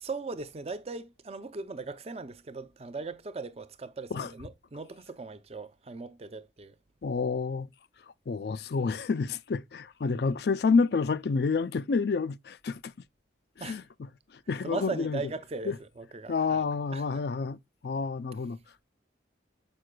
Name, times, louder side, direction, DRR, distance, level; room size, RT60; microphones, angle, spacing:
voice 1, 0.0-6.8 13.6-13.8 14.6-16.6 16.9-17.2, right 3 dB, 35° right, 0.5 m, -39 dB
voice 2, 7.0-7.7 8.3-12.9 13.6-13.8 14.5-15.2 15.7-15.8 16.3-18.6, left 4 dB, 60° left, 0.4 m, -29 dB
7.4 x 6.2 x 2.2 m
head